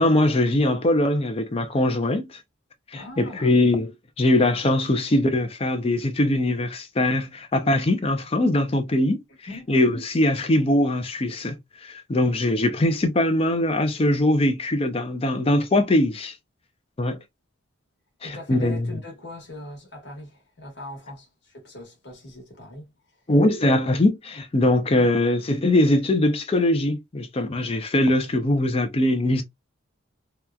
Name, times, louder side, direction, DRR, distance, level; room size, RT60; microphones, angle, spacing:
voice 1, 0.0-2.4 2.9-9.2 9.7-11.6 11.8-16.3 17.0-17.2 18.2-18.9 23.3-29.4, left 1 dB, 30° left, 0.4 m, -21 dB
voice 2, 2.9-3.5 9.5-9.7 18.2-22.9 24.9-25.1, left 2 dB, 60° left, 1.2 m, -40 dB
2.8 x 2.3 x 2.3 m
head